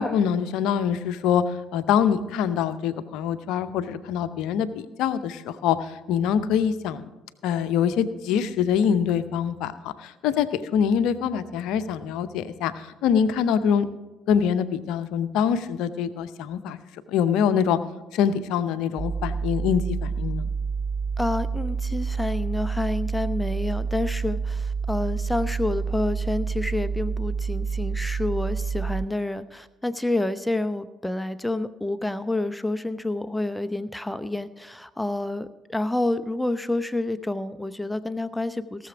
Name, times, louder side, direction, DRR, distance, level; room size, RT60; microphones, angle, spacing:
voice 1, 0.0-7.0 7.4-12.7 13.0-13.9 14.3-16.8 17.1-17.8 18.1-20.5, left 8 dB, 60° left, 12 dB, 0.6 m, -24 dB
sound 1, 19.0-29.1, right 5 dB, 35° right, 0.6 m, -28 dB
voice 2, 21.2-38.9, left 2 dB, 5° left, 12 dB, 0.7 m, -28 dB
17.5 x 6.9 x 4.9 m, 1.1 s
figure-of-eight pair, 50°, 0 cm